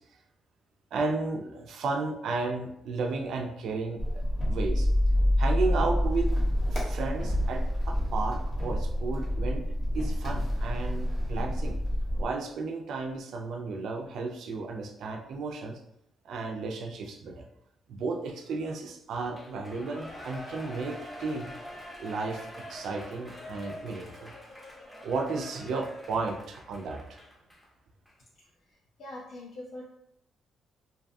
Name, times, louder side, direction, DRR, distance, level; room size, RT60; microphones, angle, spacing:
voice 1, 0.9-4.9 5.4-6.3 6.7-9.6 9.9-11.8 12.2-15.8 16.3-17.5 17.9-21.5 22.0-24.3 25.0-27.0, right 3 dB, 70° right, 2 dB, 0.3 m, -33 dB
sound 1, 4.0-12.2, equal, 45° left, 0.8 m, -27 dB
Shout / Cheering, 19.3-27.7 28.1-28.2, left 1 dB, 10° left, 0.6 m, -45 dB
voice 2, 29.0-29.8, left 1 dB, 65° left, -3 dB, 0.4 m, -42 dB
2.6 x 2.3 x 2.5 m, 0.76 s
cardioid pair, 125°, 0 cm